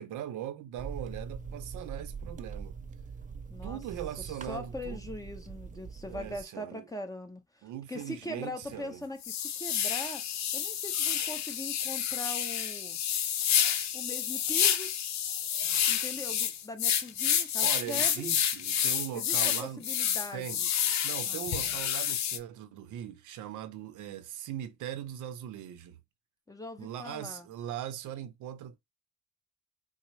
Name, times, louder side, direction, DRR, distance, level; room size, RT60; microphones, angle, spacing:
voice 1, 0.0-2.8 3.6-5.0 6.0-6.9 7.6-9.0 17.6-19.9 20.3-20.6 21.0-26.0 26.8-28.8, right 11 dB, 80° right, 0.6 m, -40 dB
sound 1, 0.8-6.4, right 5 dB, 25° right, 0.4 m, -42 dB
voice 2, 3.5-3.8 4.2-10.2 10.5-13.0 13.9-14.9 15.9-18.3 19.1-20.7 21.2-21.5 26.5-27.5, left 1 dB, 10° left, 0.9 m, -41 dB
sound 2, 8.0-8.1 8.6-8.7 9.2-22.4, left 9 dB, 65° left, 0.6 m, -29 dB
4.1 x 2.0 x 3.1 m
cardioid pair, 90°, 30 cm